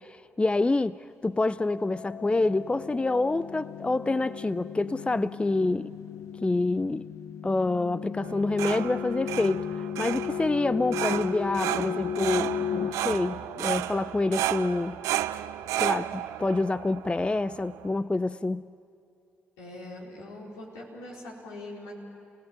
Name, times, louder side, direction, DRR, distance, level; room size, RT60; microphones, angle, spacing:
voice 1, 0.0-5.9 6.4-7.1 7.4-9.7 10.0-15.0 15.7-18.6, left 2 dB, 20° left, 17 dB, 0.5 m, -27 dB
sound 1, 1.4-14.1, left 9 dB, 65° left, 0.8 m, -36 dB
sound 2, 8.2-18.0, right 13 dB, 75° right, 0.6 m, -33 dB
voice 2, 19.6-21.9, left 1 dB, 80° left, -3 dB, 4.4 m, -42 dB
29.0 x 18.0 x 9.2 m, 2.6 s
hypercardioid pair, 40°, 5 cm